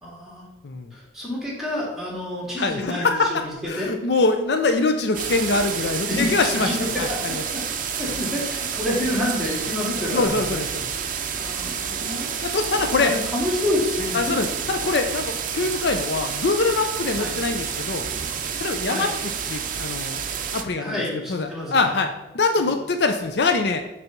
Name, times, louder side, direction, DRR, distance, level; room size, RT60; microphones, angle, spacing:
voice 1, 0.0-0.5 0.9-3.9 6.1-7.6 8.0-10.6 11.4-14.1 17.2-17.3 18.9-19.1 20.8-22.0 22.5-22.7, left 1 dB, ahead, -4 dB, 2.2 m, -29 dB
voice 2, 2.6-3.3 3.7-6.7 7.0-7.4 10.0-10.9 12.4-13.1 14.1-18.0 18.6-19.1 19.5-20.2 20.5-21.0 21.3-22.1 22.3-23.8, left 3 dB, 65° left, 6 dB, 0.5 m, -23 dB
sound 1, 5.1-20.6, right 7 dB, 45° right, 0.5 m, -29 dB
6.7 x 3.4 x 5.9 m, 1.0 s
head